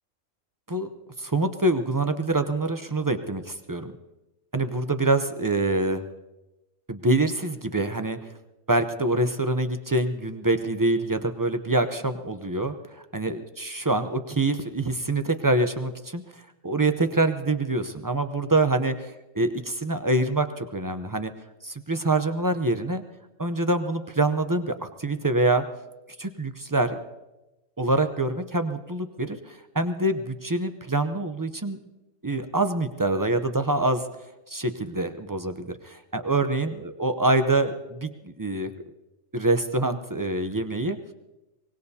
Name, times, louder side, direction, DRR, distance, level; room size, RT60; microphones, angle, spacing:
voice 1, 1.2-3.9 4.5-6.0 6.9-8.2 8.7-18.9 19.4-21.3 21.6-23.0 23.4-25.6 26.2-27.0 27.8-31.8 32.2-34.0 34.5-38.7 39.3-41.0, right 2 dB, 25° right, 8 dB, 0.4 m, -25 dB
24.0 x 19.5 x 2.8 m, 1.0 s
omnidirectional pair, 1.4 m